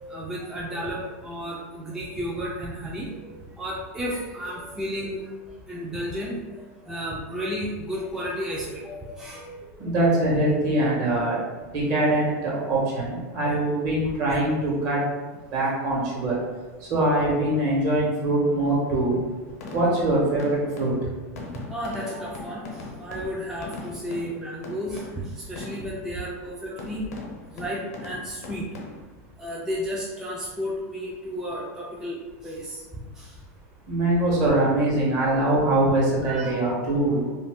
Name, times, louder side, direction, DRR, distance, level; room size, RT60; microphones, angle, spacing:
voice 1, 0.0-5.3 5.7-9.9 21.7-25.1 25.3-27.1 27.5-28.7 29.4-32.8 33.2-33.3 36.2-36.8, equal, 5° right, -5 dB, 0.4 m, -33 dB
voice 2, 9.8-11.4 11.7-15.0 15.5-16.4 16.8-19.2 19.7-20.9 26.7-26.8 33.9-37.3, right 1 dB, 45° right, -5 dB, 1.2 m, -23 dB
sound 1, 19.5-26.1 26.8-29.0, left 3 dB, 85° left, 0.7 m, -40 dB
2.6 x 2.1 x 3.5 m, 1.3 s
supercardioid pair, 130°, 8 cm